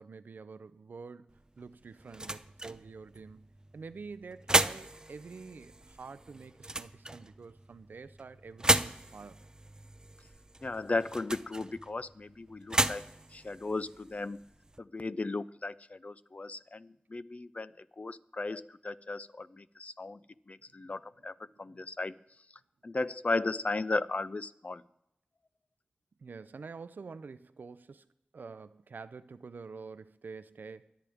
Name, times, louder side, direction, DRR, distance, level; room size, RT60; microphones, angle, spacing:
voice 1, 0.0-3.5 3.7-9.5 21.5-21.8 26.2-28.1 28.3-30.9, right 4 dB, 90° right, 0.5 m, -47 dB
sound 1, 1.3-14.8, right 1 dB, 25° right, 0.5 m, -35 dB
voice 2, 10.6-14.4 14.8-20.2 20.5-22.1 22.8-24.8, left 3 dB, 50° left, 0.5 m, -36 dB
24.5 x 8.8 x 3.5 m
wide cardioid pair, 50°, 3 cm